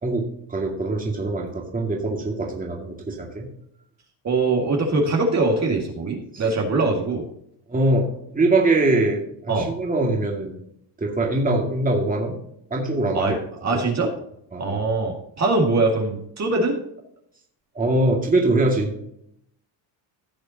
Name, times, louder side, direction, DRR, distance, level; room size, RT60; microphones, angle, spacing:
voice 1, 0.0-3.5 6.3-6.4 7.7-10.6 11.0-12.4 12.7-13.4 13.7-13.8 14.5-14.8 17.7-18.9, right 2 dB, 20° right, 0 dB, 2.3 m, -23 dB
voice 2, 4.2-7.2 9.5-9.7 13.1-14.1 14.6-16.7, right 3 dB, 35° right, 0 dB, 2.2 m, -22 dB
16.0 x 6.7 x 2.9 m, 0.73 s
cardioid pair, 125°, 45 cm